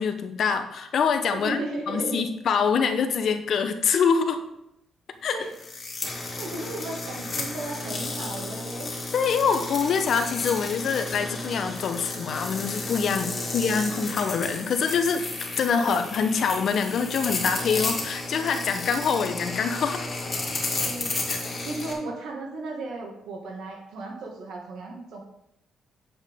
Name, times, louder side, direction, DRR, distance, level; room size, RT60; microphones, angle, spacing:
voice 1, 0.0-1.6 1.9-4.4 5.2-5.4 9.1-15.2 15.6-20.1 21.3-21.4, left 6 dB, 60° left, 8 dB, 0.9 m, -25 dB
voice 2, 1.3-2.2 5.3-5.5 6.4-8.9 13.4-14.1 15.7-16.1 20.8-21.1 21.4-25.2, right 2 dB, 80° right, 1 dB, 2.0 m, -35 dB
sound 1, 5.5-21.9, left 2 dB, 35° left, 2.4 m, -33 dB
8.5 x 7.1 x 3.6 m, 0.81 s
cardioid pair, 90°, 0 cm